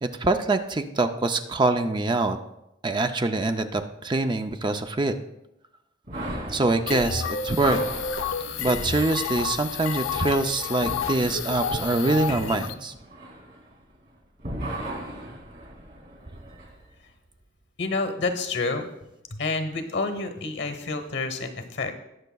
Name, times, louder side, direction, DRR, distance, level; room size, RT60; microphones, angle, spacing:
voice 1, 0.0-2.4 2.8-5.2 6.5-7.8 8.6-12.9, right 2 dB, 25° right, 7 dB, 0.4 m, -24 dB
sound 1, 6.1-14.1 14.4-16.7, right 1 dB, 50° right, 2.6 m, -38 dB
sound 2, 6.9-12.7, left 6 dB, 80° left, 0.6 m, -30 dB
voice 2, 17.8-18.9 19.3-22.0, left 3 dB, 60° left, 8 dB, 1.0 m, -29 dB
20.0 x 6.6 x 2.3 m, 0.86 s
head